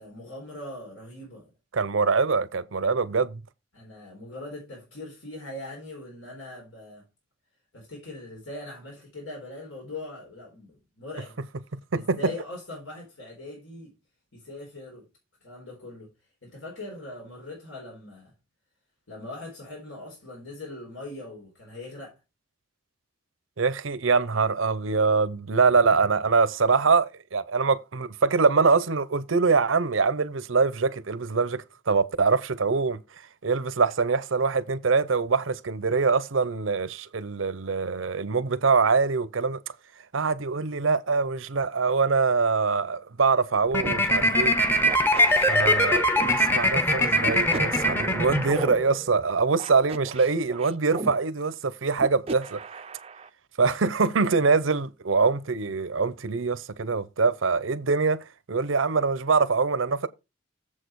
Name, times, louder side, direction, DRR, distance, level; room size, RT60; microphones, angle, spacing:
voice 1, 0.0-1.5 3.7-7.0 7.7-11.4 11.9-13.9 14.3-15.1 15.4-16.1 16.4-18.3 19.1-22.1, left 2 dB, 85° left, 4.2 m, -41 dB
voice 2, 1.7-3.4 11.9-12.2 23.6-33.0 33.4-39.6 40.1-44.5 45.5-52.6 53.6-60.1, right 4 dB, 80° right, 0.7 m, -24 dB
sound 1, 43.7-49.0, equal, 10° left, 0.8 m, -22 dB
sound 2, 43.8-44.0 44.8-46.4 47.2-48.7 49.6-51.1 52.0-53.3, right 2 dB, 30° right, 0.5 m, -37 dB
7.5 x 6.4 x 4.7 m
head